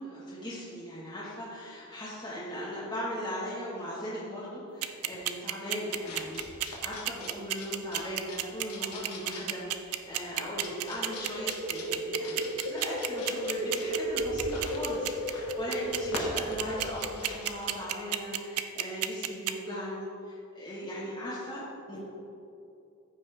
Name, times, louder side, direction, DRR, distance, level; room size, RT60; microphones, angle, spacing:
voice 1, 0.0-22.0, equal, 20° left, -9 dB, 1.3 m, -38 dB
sound 1, 4.8-19.5, right 14 dB, 90° right, 0.5 m, -30 dB
sound 2, 5.9-17.8, left 2 dB, 90° left, 1.5 m, -44 dB
sound 3, 10.8-17.3, equal, 35° right, 2.2 m, -35 dB
14.0 x 5.5 x 3.3 m, 2.7 s
head